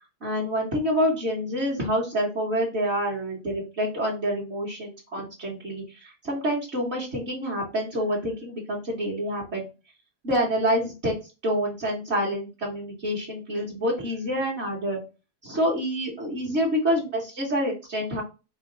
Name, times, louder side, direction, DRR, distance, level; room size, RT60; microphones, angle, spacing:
voice 1, 0.2-9.6 10.2-11.1 11.4-15.0 15.4-18.2, equal, 45° right, -4 dB, 1.5 m, -27 dB
4.9 x 2.4 x 3.8 m, 0.30 s
omnidirectional pair, 1.6 m